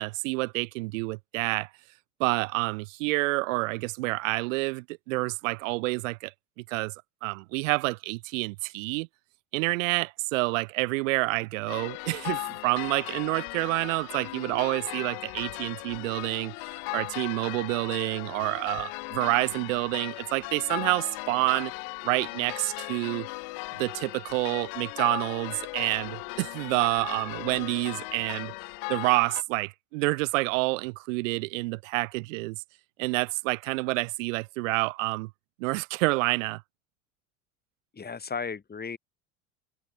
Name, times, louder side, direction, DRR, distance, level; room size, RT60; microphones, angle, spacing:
voice 1, 0.0-1.7 2.2-6.3 6.7-6.9 7.2-9.1 9.5-21.7 22.0-23.3 23.8-28.5 28.9-32.6 33.0-35.3 35.6-36.6, right 24 dB, 65° right, 1.3 m, -28 dB
sound 1, 11.7-29.4, left 40 dB or more, 60° left, 2.1 m, -37 dB
voice 2, 37.9-39.0, left 5 dB, 25° left, 4.6 m, -35 dB
hypercardioid pair, 75°, 41 cm